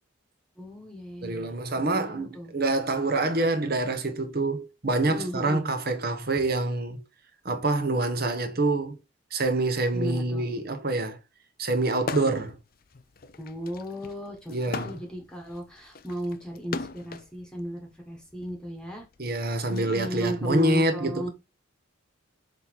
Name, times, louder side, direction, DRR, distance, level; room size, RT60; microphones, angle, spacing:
voice 1, 0.6-1.6 2.0-2.5 5.0-5.6 9.9-10.5 13.4-14.5 14.8-19.1 19.7-21.3, equal, 5° left, 1.4 m, -35 dB
voice 2, 1.2-7.0 7.4-8.9 9.3-11.2 11.6-12.5 14.5-15.0 19.2-21.3, right 2 dB, 50° right, 1.2 m, -26 dB
sound 1, 12.0-12.5 12.9-17.3 18.2-19.8, left 4 dB, 45° left, 0.5 m, -37 dB
6.6 x 3.7 x 4.6 m
head